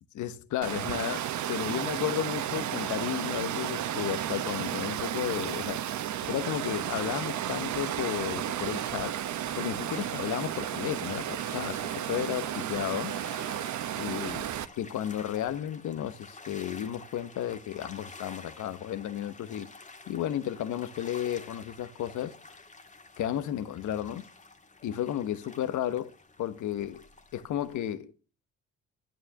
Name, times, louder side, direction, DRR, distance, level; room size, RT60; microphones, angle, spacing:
voice 1, 0.1-5.9 6.2-9.1 9.6-13.1 13.9-19.7 20.1-22.3 23.2-24.2 24.8-26.1 26.4-27.0 27.3-28.1, left 11 dB, 75° left, 1.1 m, -33 dB
Water, 0.6-14.7, right 11 dB, 70° right, 1.1 m, -33 dB
sound 1, 9.9-27.8, left 3 dB, 25° left, 1.7 m, -50 dB
12.0 x 9.3 x 7.0 m
cardioid pair, 90°, 30 cm